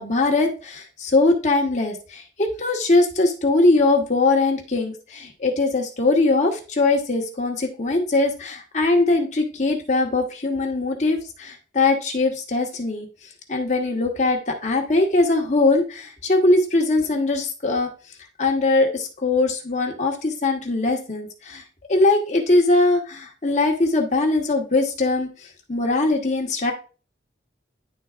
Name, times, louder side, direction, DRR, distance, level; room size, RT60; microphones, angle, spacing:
voice 1, 0.0-13.1 13.5-17.9 18.4-21.6 21.9-25.3 25.7-26.7, left 2 dB, 40° left, 1 dB, 1.1 m, -21 dB
10.5 x 3.9 x 2.4 m, 0.35 s
head